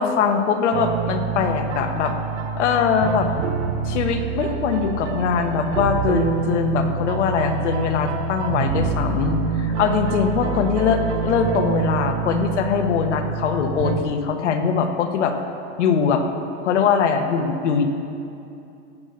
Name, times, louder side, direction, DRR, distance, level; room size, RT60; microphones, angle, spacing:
voice 1, 0.0-2.1 2.6-3.3 3.8-15.3 15.8-16.2 16.6-17.9, left 6 dB, 85° left, 6 dB, 1.5 m, -22 dB
sound 1, 0.7-14.0, right 5 dB, 80° right, 1.1 m, -26 dB
17.5 x 6.7 x 6.8 m, 2.7 s
supercardioid pair, 175°, 35 cm